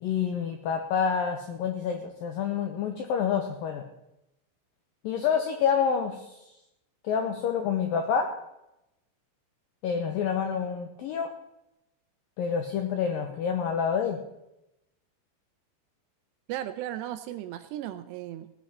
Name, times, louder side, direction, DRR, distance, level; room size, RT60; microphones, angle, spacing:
voice 1, 0.0-3.8 5.0-6.4 7.0-8.3 9.8-11.3 12.4-14.2, left 7 dB, 85° left, 5 dB, 2.0 m, -28 dB
voice 2, 16.5-18.5, right 12 dB, 80° right, 11 dB, 2.5 m, -36 dB
17.5 x 9.9 x 4.2 m, 0.88 s
omnidirectional pair, 5.3 m